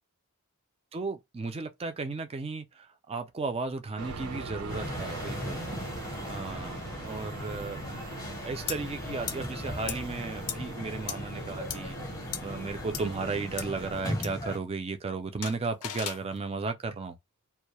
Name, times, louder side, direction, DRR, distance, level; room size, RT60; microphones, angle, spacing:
voice 1, 0.9-5.6 6.3-12.0 12.4-17.2, right 4 dB, 25° right, 0.4 m, -35 dB
sound 1, 4.0-14.1, right 3 dB, 80° right, 0.7 m, -42 dB
sound 2, 4.7-14.6, left 1 dB, 15° left, 0.7 m, -38 dB
sound 3, 8.7-8.8 9.3-9.4 9.9-10.0 10.5-10.6 11.1-11.2 11.7-11.8 12.3-12.4 12.9-13.0 13.6-13.7 14.2-14.3 15.4-16.2, left 10 dB, 75° left, 0.4 m, -35 dB
2.2 x 2.0 x 2.8 m
head